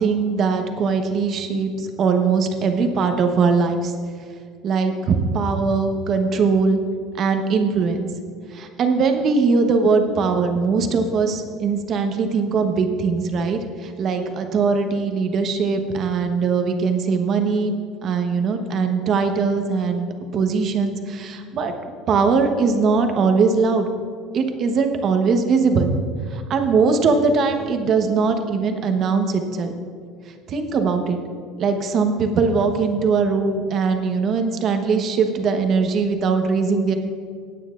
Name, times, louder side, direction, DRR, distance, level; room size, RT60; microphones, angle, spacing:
voice 1, 0.0-3.9 4.6-6.8 7.2-8.1 8.5-17.7 18.0-21.7 22.1-23.9 24.3-25.9 26.3-29.7 30.5-31.2 31.6-36.9, right 4 dB, 45° right, 6 dB, 1.1 m, -21 dB
17.0 x 9.0 x 2.5 m, 2.1 s
cardioid pair, 130°, 0 cm